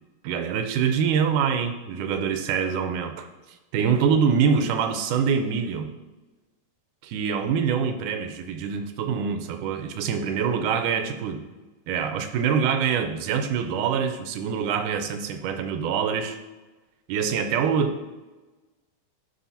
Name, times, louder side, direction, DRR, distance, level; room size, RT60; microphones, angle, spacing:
voice 1, 0.2-3.3 3.7-5.9 7.0-11.5 11.9-16.4 17.1-18.0, right 6 dB, 90° right, 7 dB, 2.2 m, -25 dB
11.5 x 5.4 x 2.8 m, 1.2 s
omnidirectional pair, 3.6 m